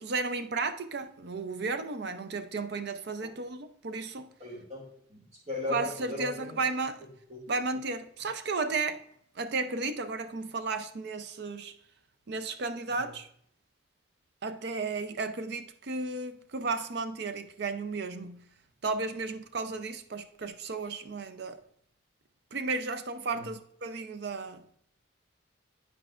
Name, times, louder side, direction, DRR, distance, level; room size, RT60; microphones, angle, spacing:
voice 1, 0.0-4.3 5.7-7.0 7.5-9.0 9.4-11.7 12.3-13.3 14.4-18.4 18.8-21.6 22.5-24.6, right 3 dB, 55° right, 0.5 m, -34 dB
voice 2, 4.4-6.5 7.3-7.4 12.9-13.1 23.3-23.4, left 2 dB, 30° right, 2.1 m, -38 dB
11.0 x 4.6 x 2.4 m
head